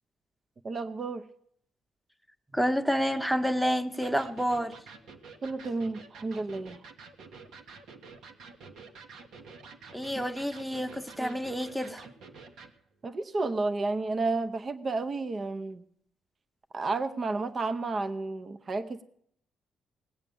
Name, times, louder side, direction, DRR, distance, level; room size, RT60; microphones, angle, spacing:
voice 1, 0.6-1.2 5.4-6.8 11.2-11.4 13.0-15.8 16.7-19.0, right 3 dB, 40° right, 0.7 m, -31 dB
voice 2, 2.5-4.7 9.9-12.0, equal, ahead, 1.0 m, -29 dB
Electric guitar, 4.0-12.8, right 4 dB, 75° right, 1.3 m, -49 dB
19.5 x 8.0 x 7.0 m
cardioid pair, 90°, 0 cm